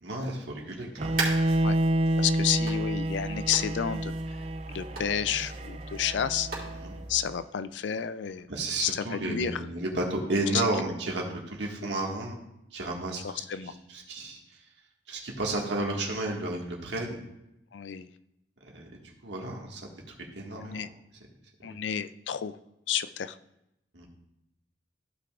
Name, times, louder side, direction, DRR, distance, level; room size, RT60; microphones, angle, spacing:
voice 1, 0.0-1.3 6.8-7.0 8.5-12.4 12.7-14.4 15.1-17.2 18.7-18.9 19.2-19.8 20.4-20.9 21.6-21.8 23.9-24.1, right 2 dB, 75° right, -1 dB, 1.8 m, -32 dB
Bowed string instrument, 1.0-7.0, right 1 dB, 35° right, 0.3 m, -29 dB
sound 1, 1.0-7.2, right 3 dB, 50° right, 3.3 m, -38 dB
voice 2, 2.2-4.1 4.7-6.5 7.1-8.5 8.8-9.6 10.5-10.7 13.2-13.7 17.7-18.1 20.6-20.9 21.6-22.6 22.9-23.4, left 8 dB, 75° left, 13 dB, 0.4 m, -31 dB
14.5 x 5.9 x 2.5 m, 0.85 s
head